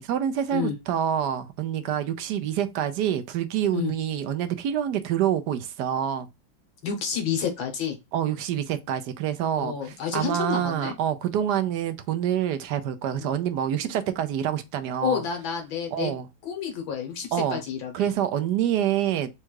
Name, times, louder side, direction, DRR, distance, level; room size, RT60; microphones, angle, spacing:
voice 1, 0.0-6.3 8.1-15.2 15.9-16.3 17.3-17.6 17.9-19.3, right 10 dB, 70° right, 1.1 m, -27 dB
voice 2, 6.8-8.0 9.6-10.9 13.2-13.3 15.0-16.1 16.4-18.1, left 7 dB, 80° left, 2.0 m, -29 dB
4.4 x 2.4 x 4.6 m
omnidirectional pair, 2.1 m